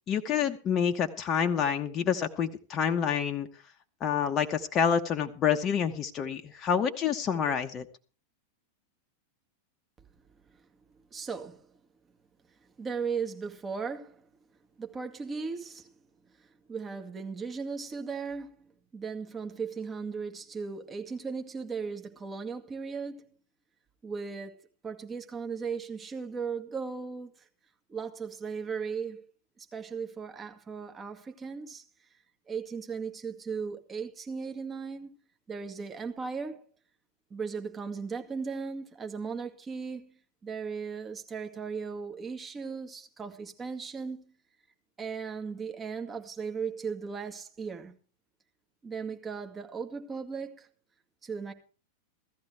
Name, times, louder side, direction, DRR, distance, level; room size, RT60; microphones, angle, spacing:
voice 1, 0.1-3.5 4.0-7.8, left 7 dB, 30° left, 1.1 m, -28 dB
voice 2, 11.1-11.7 12.8-14.3 14.8-15.9 16.4-23.3 24.0-27.3 27.9-29.3 29.6-31.8 32.5-35.2 35.5-36.6 37.3-44.3 45.0-47.9 48.8-50.7 51.2-51.5, right 5 dB, 20° right, 2.2 m, -37 dB
16.5 x 14.0 x 3.4 m
figure-of-eight pair, 90°, 0 cm